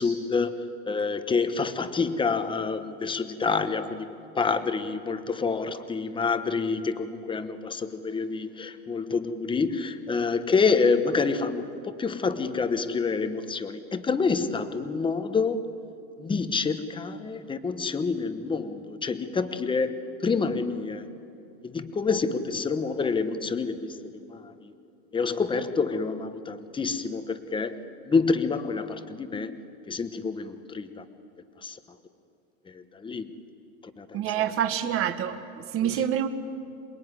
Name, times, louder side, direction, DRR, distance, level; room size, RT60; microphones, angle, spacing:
voice 1, 0.0-15.6 16.2-19.9 20.2-21.1 21.6-24.7 25.1-29.5 29.9-31.0 31.6-31.8 32.7-33.3 34.0-34.4 35.8-36.1, left 4 dB, 10° left, 10 dB, 1.1 m, -28 dB
voice 2, 34.1-36.3, right 10 dB, 30° right, 7 dB, 1.4 m, -27 dB
27.0 x 20.5 x 9.8 m, 2.7 s
supercardioid pair, 145°, 42 cm